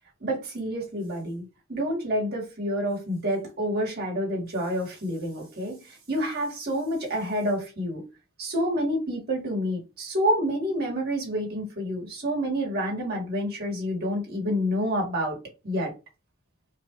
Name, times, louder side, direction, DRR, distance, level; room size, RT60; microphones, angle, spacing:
voice 1, 0.2-8.1 8.4-15.4 15.6-15.9, equal, 50° right, 2.0 m, -28 dB
4.6 x 2.5 x 3.1 m
head